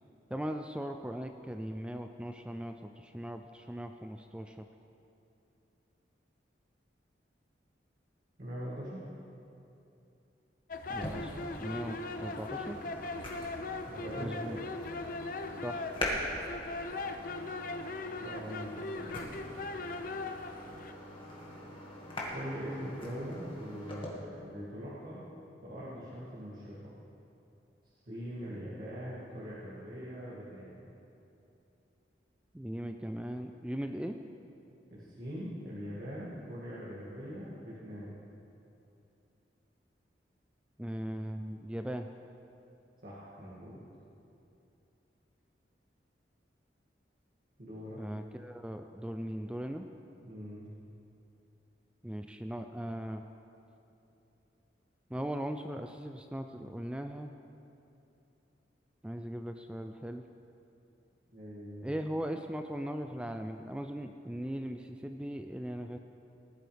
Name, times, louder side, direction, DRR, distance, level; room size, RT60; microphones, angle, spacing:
voice 1, 0.3-4.6 10.9-11.3 11.6-12.8 14.2-14.6 15.6-15.8 32.5-34.2 40.8-42.1 48.0-49.9 52.0-53.2 55.1-57.3 59.0-60.2 61.8-66.0, equal, 5° right, 6 dB, 0.3 m, -39 dB
voice 2, 8.4-9.1 13.8-14.6 18.2-19.5 22.3-25.3 25.6-26.9 28.0-30.8 34.9-38.2 43.0-43.8 47.6-48.0 50.2-50.7 61.3-61.9, equal, 50° right, -8 dB, 2.3 m, -42 dB
sound 1, 10.7-20.9, left 3 dB, 50° left, 0.6 m, -40 dB
sound 2, 10.8-24.1, left 1 dB, 30° left, 1.9 m, -42 dB
18.5 x 11.5 x 3.4 m, 2.8 s
head